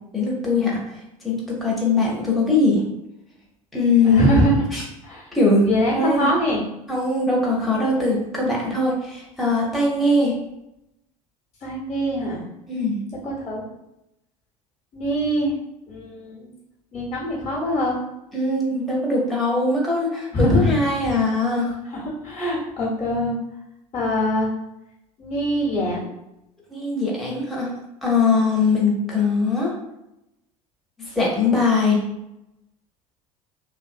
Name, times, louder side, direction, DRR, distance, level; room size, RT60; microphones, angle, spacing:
voice 1, 0.1-0.8 1.2-2.8 3.7-4.2 4.7-4.8 5.3-5.7 5.9-6.3 6.9-10.4 12.7-13.0 18.3-21.7 26.7-27.7 28.0-29.7 31.0-32.0, left 3 dB, ahead, -4 dB, 0.7 m, -21 dB
voice 2, 4.0-4.5 5.0-5.3 5.6-6.6 11.6-12.4 13.2-13.6 14.9-15.6 15.9-16.5 16.9-18.0 20.3-20.7 21.9-23.4 23.9-24.5 25.2-26.1, equal, 35° left, -3 dB, 0.9 m, -23 dB
2.6 x 2.5 x 2.4 m, 0.87 s
hypercardioid pair, 70°, 19 cm